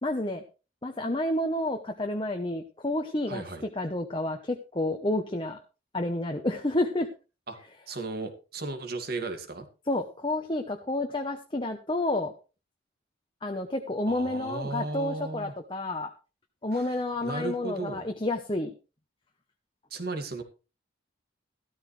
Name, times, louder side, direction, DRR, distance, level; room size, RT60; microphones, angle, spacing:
voice 1, 0.0-0.4 0.8-3.4 3.8-5.6 5.9-7.1 9.9-12.3 13.4-16.1 16.6-18.7, left 1 dB, 25° left, 4 dB, 1.0 m, -30 dB
voice 2, 3.3-3.6 7.5-7.6 7.9-9.7 14.1-15.5 16.7-18.1 19.9-20.4, right 3 dB, 50° right, 6 dB, 2.3 m, -35 dB
14.0 x 13.0 x 3.3 m, 0.32 s
head